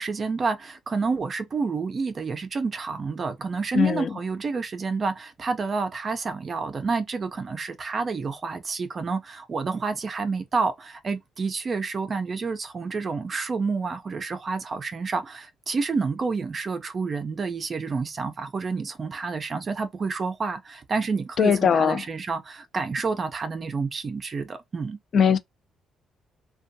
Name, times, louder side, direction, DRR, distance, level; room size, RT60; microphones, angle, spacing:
voice 1, 0.0-25.0, right 4 dB, 40° right, 0.4 m, -29 dB
voice 2, 3.7-4.1 21.4-22.0 25.1-25.4, left 6 dB, 55° left, 0.3 m, -20 dB
2.5 x 2.2 x 2.6 m
cardioid pair, 90°, 0 cm